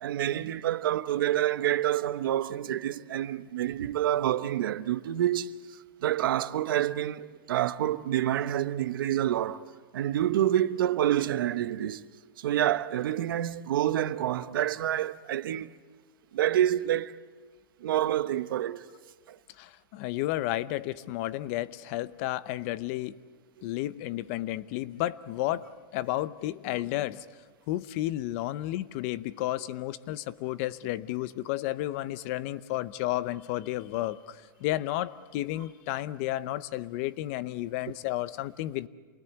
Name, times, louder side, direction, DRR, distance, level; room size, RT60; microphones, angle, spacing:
voice 1, 0.0-9.6 9.9-12.0 12.4-15.7 16.3-17.2 17.8-18.8 19.3-19.4 23.6-23.7, right 12 dB, 75° right, 1.0 m, -28 dB
voice 2, 19.6-23.2 23.6-27.3 27.7-38.9, left 15 dB, 40° left, 0.6 m, -32 dB
28.0 x 20.5 x 8.2 m
supercardioid pair, 160°, 11 cm